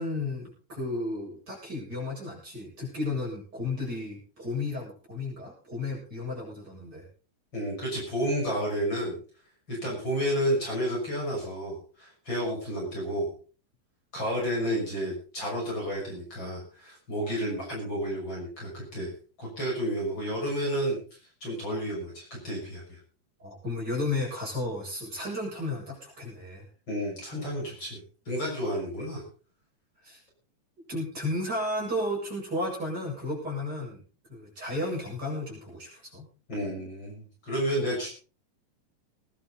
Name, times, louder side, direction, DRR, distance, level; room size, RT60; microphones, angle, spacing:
voice 1, 0.0-7.0 23.4-26.6 30.0-30.2 30.9-34.0 34.3-36.3, left 2 dB, 25° right, -3 dB, 8.4 m, -33 dB
voice 2, 7.5-9.2 9.7-13.3 14.1-19.1 19.4-21.0 21.4-23.0 26.9-28.0 28.2-29.2 36.5-38.1, equal, 30° left, -2 dB, 6.8 m, -31 dB
21.0 x 11.5 x 4.0 m, 0.38 s
omnidirectional pair, 4.1 m